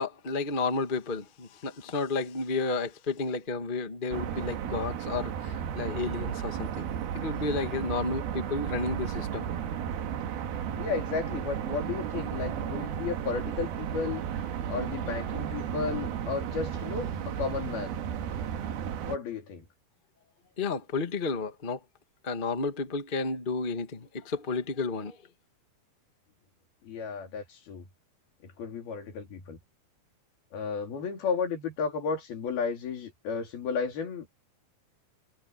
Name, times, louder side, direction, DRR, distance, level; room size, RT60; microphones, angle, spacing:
voice 1, 0.0-6.9 7.1-9.5 20.6-21.8 22.2-25.2, left 4 dB, 35° left, 0.8 m, -32 dB
sound 1, 4.1-19.2, right 9 dB, 85° right, 3.5 m, -34 dB
voice 2, 10.8-14.3 14.7-18.0 19.1-19.7 26.8-27.9 28.4-29.6 30.5-34.4, left 5 dB, 80° left, 5.5 m, -33 dB
omnidirectional pair, 4.3 m